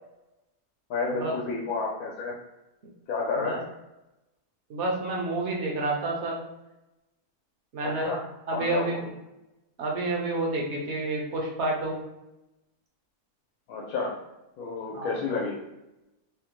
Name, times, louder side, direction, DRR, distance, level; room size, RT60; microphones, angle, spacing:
voice 1, 0.9-2.4 3.1-3.6 7.8-8.2 8.5-9.1 13.7-14.2 14.6-15.6, left 4 dB, 90° left, -2 dB, 1.1 m, -30 dB
voice 2, 4.7-6.4 7.7-8.1 8.5-9.0 9.8-12.0 14.9-15.2, right 2 dB, 60° right, -1 dB, 0.8 m, -29 dB
3.2 x 2.1 x 3.0 m, 0.96 s
omnidirectional pair, 1.5 m